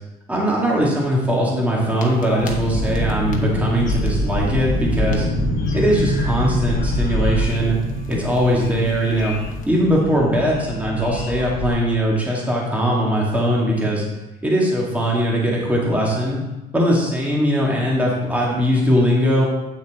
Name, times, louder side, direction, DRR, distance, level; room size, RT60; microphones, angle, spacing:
voice 1, 0.3-5.3 5.7-7.8 8.1-9.4 9.7-14.0 14.4-16.4 16.7-19.5, equal, 10° right, -4 dB, 2.1 m, -20 dB
sound 1, 1.8-11.7, left 1 dB, 50° left, 1.4 m, -25 dB
8.5 x 6.3 x 3.7 m, 1.0 s
cardioid pair, 110°, 17 cm